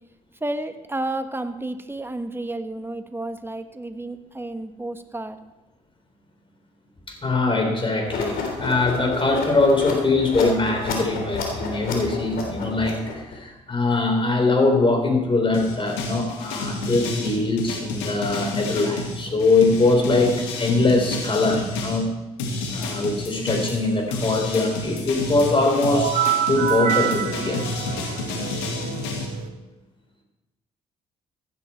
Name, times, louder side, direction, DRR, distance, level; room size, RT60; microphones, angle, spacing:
voice 1, 0.4-5.4, right 2 dB, 15° right, 9 dB, 1.4 m, -31 dB
voice 2, 7.1-22.1 22.7-26.1 26.5-27.7, left 3 dB, 35° left, 3 dB, 4.1 m, -22 dB
sound 1, 8.1-13.3, left 4 dB, 70° left, 3.4 m, -30 dB
sound 2, 15.5-22.0 22.4-29.3, left 3 dB, 90° left, 2.1 m, -30 dB
sound 3, 25.9-29.5, right 10 dB, 65° right, 1.4 m, -26 dB
15.5 x 10.0 x 4.5 m, 1.1 s
hypercardioid pair, 55°, 16 cm